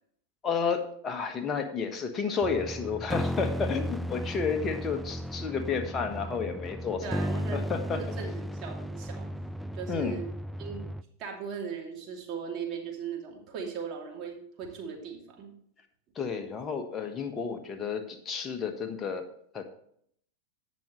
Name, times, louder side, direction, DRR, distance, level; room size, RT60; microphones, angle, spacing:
voice 1, 0.4-8.0 9.9-10.2 16.1-19.2 19.5-19.6, left 5 dB, 20° left, 6 dB, 1.3 m, -31 dB
sound 1, 2.4-11.0, equal, ahead, 0.4 m, -35 dB
voice 2, 7.0-7.6 7.9-9.3 9.7-10.3 10.6-10.9 11.2-15.5, right 6 dB, 35° right, 0 dB, 2.7 m, -38 dB
16.5 x 6.1 x 3.2 m, 0.66 s
figure-of-eight pair, 90°, 0 cm